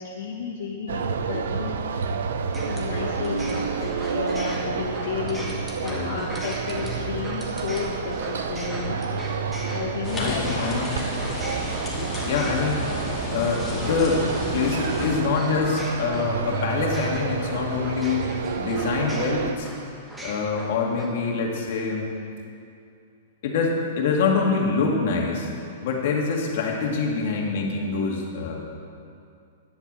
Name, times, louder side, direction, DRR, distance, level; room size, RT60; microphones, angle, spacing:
voice 1, 0.0-1.8 2.6-9.0 9.7-10.8, left 5 dB, 70° left, -3 dB, 1.5 m, -32 dB
sound 1, 0.9-19.5, right 5 dB, 85° right, 0.8 m, -29 dB
sound 2, 2.5-21.1, right 1 dB, 5° right, 1.3 m, -40 dB
sound 3, 10.0-15.2, left 1 dB, 10° left, 2.3 m, -32 dB
voice 2, 10.2-11.0 12.3-12.9 13.3-14.3 14.5-19.7 20.2-22.1 23.4-25.5 25.8-28.5, left 4 dB, 55° left, -1 dB, 2.3 m, -25 dB
10.5 x 8.3 x 7.7 m, 2.5 s
hypercardioid pair, 165°, 0 cm